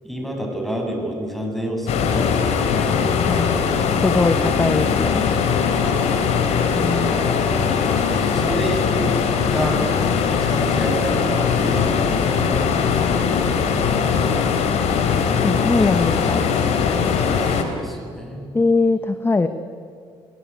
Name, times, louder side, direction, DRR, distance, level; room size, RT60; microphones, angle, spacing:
voice 1, 0.0-3.0 5.8-6.2 7.0-7.7 8.2-9.2 9.4-9.8 10.3-12.8 13.1-14.4 15.9-16.4 16.8-18.6, equal, ahead, 2 dB, 7.3 m, -30 dB
sound 1, 1.9-17.6, left 6 dB, 70° left, 3.2 m, -20 dB
voice 2, 4.0-5.2 6.7-7.2 15.4-16.5 18.5-19.5, left 3 dB, 20° left, 10 dB, 1.2 m, -21 dB
27.5 x 18.0 x 9.6 m, 2.3 s
supercardioid pair, 80°, 11 cm